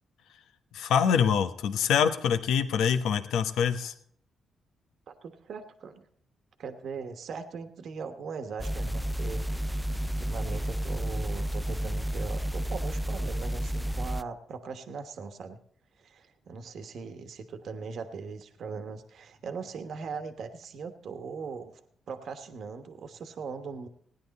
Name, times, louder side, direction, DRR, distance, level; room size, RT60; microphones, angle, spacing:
voice 1, 0.7-3.9, left 7 dB, 85° left, 9 dB, 1.0 m, -25 dB
voice 2, 5.2-6.1 6.6-15.6 16.0-21.8 22.1-23.9, right 5 dB, 65° right, 8 dB, 1.2 m, -40 dB
sound 1, 8.6-14.2, equal, ahead, 0.4 m, -31 dB
17.0 x 10.0 x 4.1 m, 0.63 s
cardioid pair, 80°, 0 cm